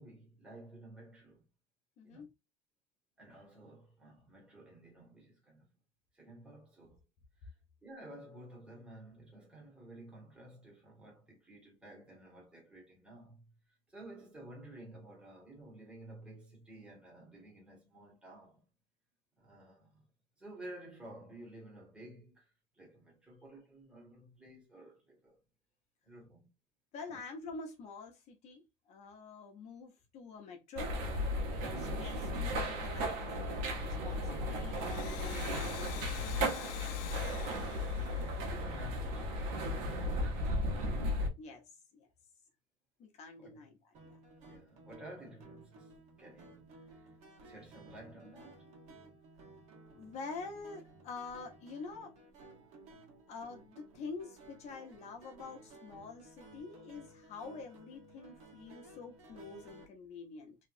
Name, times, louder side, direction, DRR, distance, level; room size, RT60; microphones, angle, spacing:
voice 1, 0.0-1.4 2.0-2.2 3.2-5.6 6.1-7.0 7.4-7.5 7.8-13.5 13.9-18.6 19.4-20.1 20.4-25.4 26.0-26.5 27.1-27.2 38.2-39.9 43.4-43.6 44.5-45.9 46.2-46.7 47.4-48.7 52.6-52.7 53.0-53.2, right 1 dB, 5° right, 1.8 m, -53 dB
voice 2, 2.0-2.3 26.9-30.9 31.8-36.8 40.5-40.7 41.4-41.6 41.9-42.1 43.0-43.8 44.0-44.2 49.9-52.1 53.3-60.6, left 4 dB, 50° left, 1.0 m, -47 dB
sound 1, 30.8-41.3, left 1 dB, 85° right, 1.1 m, -35 dB
Domestic sounds home sounds, 34.6-39.1, left 12 dB, 75° left, 0.6 m, -47 dB
sound 2, 43.9-59.9, right 2 dB, 50° right, 1.6 m, -56 dB
3.1 x 3.0 x 2.6 m
cardioid pair, 150°, 15 cm